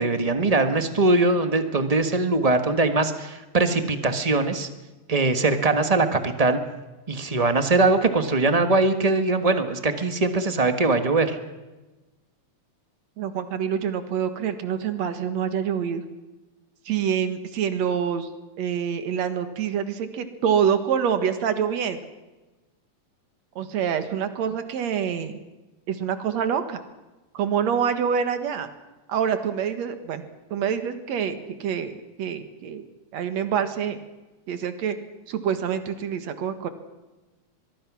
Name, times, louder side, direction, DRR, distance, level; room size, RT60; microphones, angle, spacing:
voice 1, 0.0-4.7 5.1-6.6 7.1-11.4, right 3 dB, 30° right, 8 dB, 0.6 m, -21 dB
voice 2, 13.2-16.0 16.9-18.3 18.6-22.0 23.6-25.4 25.9-26.8 27.3-28.7 29.1-30.2 30.5-32.9 33.1-34.0 34.5-35.0 35.3-36.7, right 8 dB, 65° right, 9 dB, 2.8 m, -26 dB
23.0 x 23.0 x 6.2 m, 1.1 s
omnidirectional pair, 3.3 m